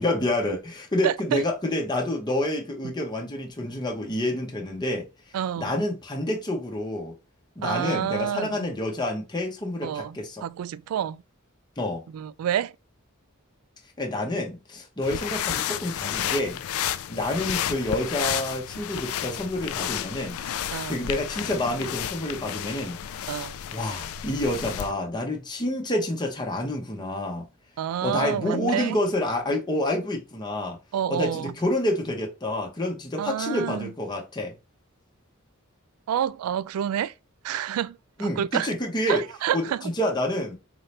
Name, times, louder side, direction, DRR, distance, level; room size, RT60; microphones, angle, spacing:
voice 1, 0.0-5.1 5.6-7.1 7.6-10.4 11.8-12.0 14.0-16.6 17.1-20.4 20.9-23.2 23.7-27.5 28.0-30.8 31.1-34.5 38.2-39.2 39.5-39.7 40.0-40.6, left 1 dB, 20° left, 1.0 m, -28 dB
voice 2, 1.0-1.4 5.3-5.7 7.6-8.7 9.8-11.2 12.1-12.7 20.7-21.0 23.3-23.6 27.8-29.0 30.9-31.5 33.2-33.9 36.1-37.1 37.4-38.7 39.1-39.8, right 9 dB, 90° right, 0.3 m, -28 dB
sound 1, 15.0-24.9, left 10 dB, 85° left, 0.4 m, -32 dB
4.0 x 2.7 x 3.3 m
head